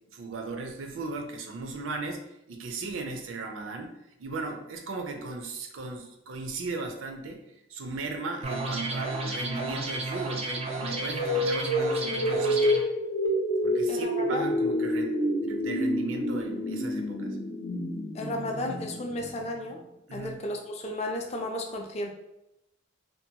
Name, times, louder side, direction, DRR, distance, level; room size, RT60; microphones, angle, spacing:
voice 1, 0.1-2.2 2.5-3.9 4.2-7.4 7.7-12.8 13.6-17.4 20.1-20.4, right 3 dB, 85° right, 3 dB, 0.5 m, -37 dB
sound 1, 8.4-12.8, right 2 dB, 30° right, 0.4 m, -32 dB
sound 2, 10.8-19.8, equal, 85° left, 0.7 m, -28 dB
voice 2, 13.9-14.5 18.1-19.8 20.1-22.1, left 1 dB, 35° left, 2 dB, 0.4 m, -33 dB
2.6 x 2.1 x 2.7 m, 0.86 s
head